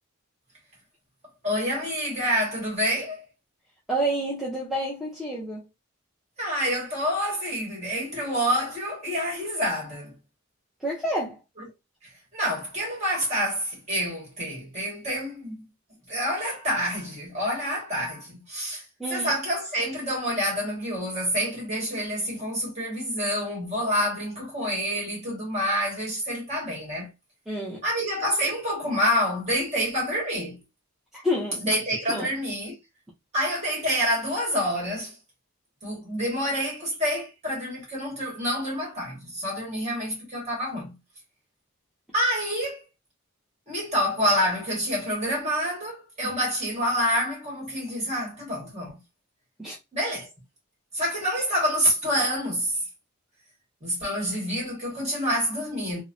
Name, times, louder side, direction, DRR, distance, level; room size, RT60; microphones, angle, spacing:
voice 1, 1.4-3.2 6.4-10.1 12.3-15.5 16.1-18.8 19.1-27.1 27.8-30.6 31.6-32.7 33.3-35.1 35.8-41.0 42.1-42.8 43.7-49.0 49.9-50.3 50.9-52.8 53.8-56.0, equal, 30° right, 1.5 m, -27 dB
voice 2, 3.9-5.6 10.8-11.4 19.0-19.4 27.5-27.8 31.1-31.7 32.1-32.3 46.2-46.3 49.6-49.8, equal, ahead, 0.5 m, -29 dB
3.0 x 2.0 x 2.5 m
head